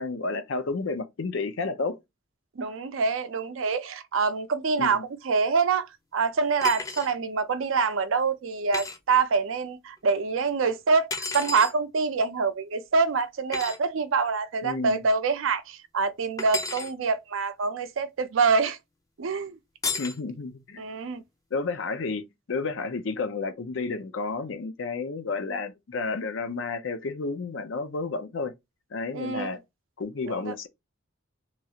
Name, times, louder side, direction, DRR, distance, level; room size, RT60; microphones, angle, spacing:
voice 1, 0.0-2.0 4.8-5.0 14.6-15.0 20.0-20.8 21.5-28.5 28.9-29.6 30.0-30.7, left 3 dB, 70° left, 0.5 m, -31 dB
voice 2, 2.6-5.9 6.1-18.8 19.2-19.6 20.8-21.2 29.1-29.6 30.3-30.5, right 4 dB, 75° right, 0.5 m, -26 dB
sound 1, 6.6-7.1 8.7-9.0 11.1-11.7 13.5-13.8 16.4-16.9 19.8-20.2, left 4 dB, 15° left, 0.4 m, -32 dB
3.0 x 2.4 x 2.8 m
head